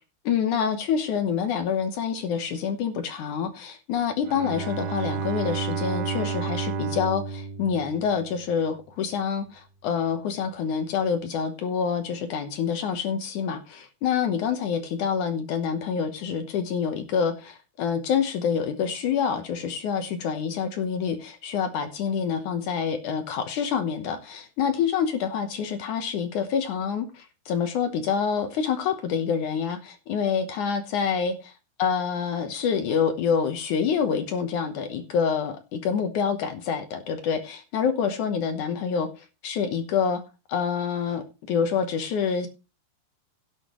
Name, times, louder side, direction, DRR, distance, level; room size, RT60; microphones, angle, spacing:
voice 1, 0.3-31.5 31.8-40.2 40.5-42.5, left 7 dB, 70° left, 1.9 m, -27 dB
Bowed string instrument, 4.3-8.6, right 5 dB, 70° right, 2.7 m, -31 dB
17.0 x 8.4 x 3.1 m
omnidirectional pair, 4.9 m